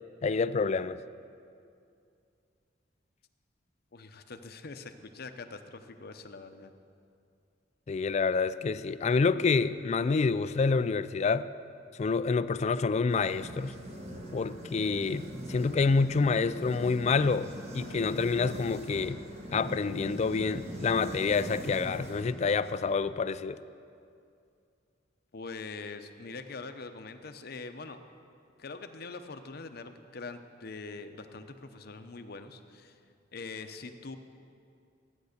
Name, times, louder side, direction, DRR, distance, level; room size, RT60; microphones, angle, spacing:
voice 1, 0.2-1.0 7.9-11.4 12.0-13.7 14.3-15.2 15.5-19.2 19.5-23.6, left 4 dB, 35° left, 14 dB, 0.3 m, -27 dB
voice 2, 3.9-6.7 25.3-28.0 28.6-33.0 33.3-34.2, left 3 dB, 55° left, 8 dB, 0.7 m, -43 dB
sound 1, 13.1-22.7, equal, 35° right, 1.4 m, -42 dB
13.0 x 9.6 x 6.6 m, 2.4 s
head